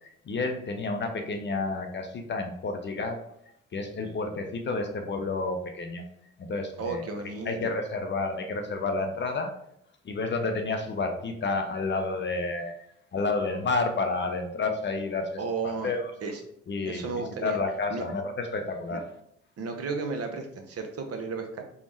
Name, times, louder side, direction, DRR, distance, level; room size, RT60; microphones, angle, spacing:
voice 1, 0.0-3.2 3.7-6.0 6.4-7.1 7.5-9.5 10.0-12.7 13.1-15.3 15.6-16.1 16.7-17.0 17.4-19.1, left 3 dB, 30° left, 5 dB, 0.5 m, -30 dB
voice 2, 6.8-7.6 15.4-15.9 16.2-16.4 16.9-17.6 17.9-18.0 18.9-19.0 19.6-21.6, right 4 dB, 40° right, 4 dB, 0.6 m, -33 dB
3.3 x 2.0 x 3.1 m, 0.72 s
hypercardioid pair, 45°, 36 cm